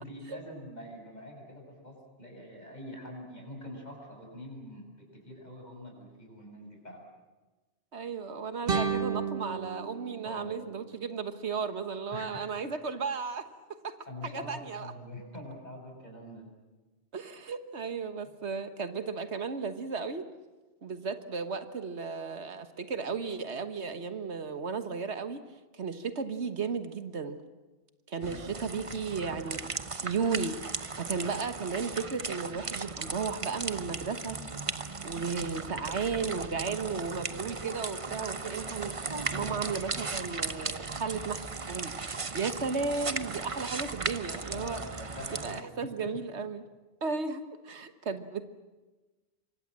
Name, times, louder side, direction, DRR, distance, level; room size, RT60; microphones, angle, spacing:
voice 1, 0.0-7.0 10.2-10.5 12.1-12.4 14.1-16.5 28.3-28.6 44.5-45.7 46.0-46.2, left 1 dB, 40° left, 1 dB, 7.0 m, -45 dB
voice 2, 7.9-13.4 13.8-13.9 14.2-14.9 17.1-20.3 20.8-25.4 25.7-27.4 28.1-29.6 29.9-34.4 35.0-38.9 39.3-44.8 45.4-46.6 47.0-48.4, right 5 dB, 75° right, 10 dB, 1.6 m, -34 dB
sound 1, 8.7-11.7, right 5 dB, 55° right, 1.7 m, -34 dB
sound 2, 28.2-45.6, right 4 dB, 30° right, 1.0 m, -37 dB
27.0 x 24.0 x 7.5 m, 1.2 s
omnidirectional pair, 1.1 m